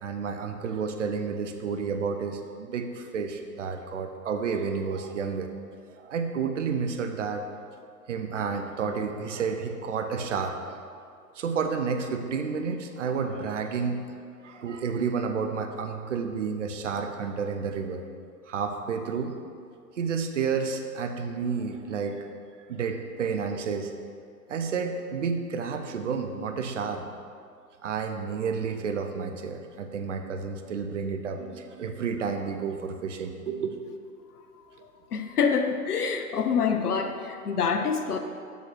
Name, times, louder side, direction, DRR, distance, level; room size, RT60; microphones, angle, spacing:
voice 1, 0.0-5.5 5.9-7.6 8.1-10.9 11.3-18.0 18.5-19.4 20.0-22.3 22.6-23.9 24.5-27.1 27.8-33.9, right 5 dB, 50° right, 6 dB, 0.7 m, -31 dB
voice 2, 34.8-38.2, left 6 dB, 75° left, 6 dB, 0.8 m, -26 dB
7.1 x 4.1 x 6.1 m, 2.2 s
figure-of-eight pair, 125°, 47 cm